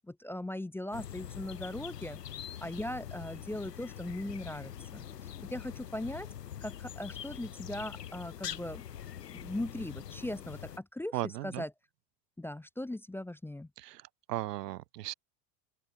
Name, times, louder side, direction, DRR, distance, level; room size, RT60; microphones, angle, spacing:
voice 1, 0.1-2.2 2.6-5.0 5.4-6.3 6.6-8.8 9.3-11.7 12.4-13.7, left 1 dB, 5° left, 0.6 m, -39 dB
sound 1, 0.9-10.8, left 10 dB, 85° left, 2.9 m, -44 dB
voice 2, 11.1-11.6 13.8-14.0 14.3-15.1, right 15 dB, 80° right, 0.9 m, -36 dB
open air
hypercardioid pair, 80°, 47 cm